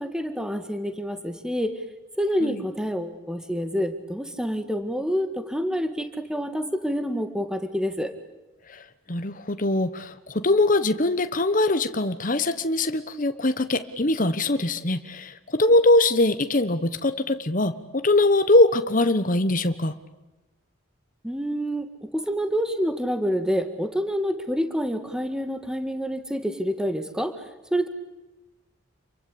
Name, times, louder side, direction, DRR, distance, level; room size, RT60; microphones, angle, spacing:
voice 1, 0.0-1.7 2.2-8.1 21.2-27.4 27.7-27.9, equal, 5° right, 9 dB, 1.8 m, -27 dB
voice 2, 9.1-19.9, left 2 dB, 40° left, 10 dB, 1.2 m, -22 dB
28.0 x 24.0 x 8.6 m, 1.1 s
head